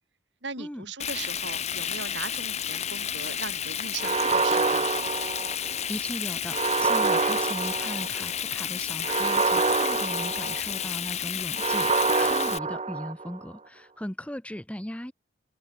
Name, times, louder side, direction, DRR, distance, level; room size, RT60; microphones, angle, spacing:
voice 1, 0.4-4.9, right 4 dB, 80° right, 4.6 m, -38 dB
Frying (food), 1.0-12.6, left 9 dB, 35° left, 0.9 m, -32 dB
sound 1, 4.0-5.9 6.5-8.3 9.0-10.9 11.6-13.4, right 4 dB, 35° right, 0.8 m, -26 dB
voice 2, 5.4-15.1, equal, 5° left, 1.0 m, -38 dB
open air
head